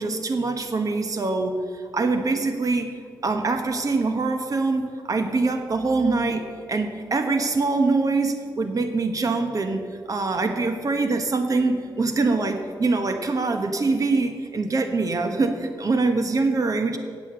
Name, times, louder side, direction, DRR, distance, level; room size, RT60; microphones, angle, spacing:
voice 1, 0.0-1.6 1.9-2.9 3.2-9.8 10.1-17.0, right 3 dB, 45° right, 6 dB, 1.2 m, -24 dB
8.5 x 7.4 x 7.7 m, 2.1 s
cardioid pair, 75°, 8 cm